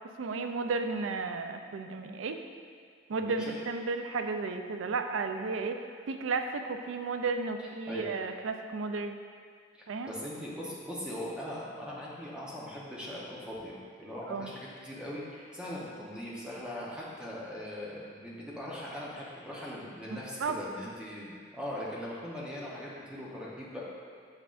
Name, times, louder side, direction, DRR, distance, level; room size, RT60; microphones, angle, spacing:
voice 1, 0.2-2.4 3.1-9.2 9.9-10.1 14.3-14.5 20.1-20.6, right 4 dB, 85° right, 6 dB, 0.4 m, -33 dB
voice 2, 3.1-3.5 7.9-8.1 10.1-23.8, left 1 dB, 5° right, -6 dB, 0.9 m, -40 dB
6.6 x 5.6 x 2.5 m, 2.1 s
head